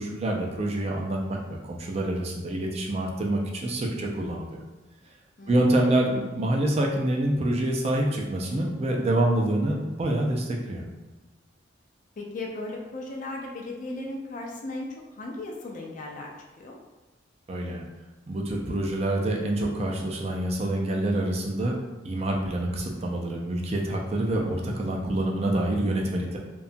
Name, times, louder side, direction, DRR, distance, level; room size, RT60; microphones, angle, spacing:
voice 1, 0.0-4.6 5.5-10.8 17.5-17.8 18.3-21.7 22.0-26.4, right 1 dB, 30° right, 0 dB, 0.4 m, -26 dB
voice 2, 12.2-16.3 16.6-16.8, left 2 dB, 40° left, 0 dB, 0.3 m, -36 dB
2.8 x 2.2 x 2.5 m, 1.2 s
head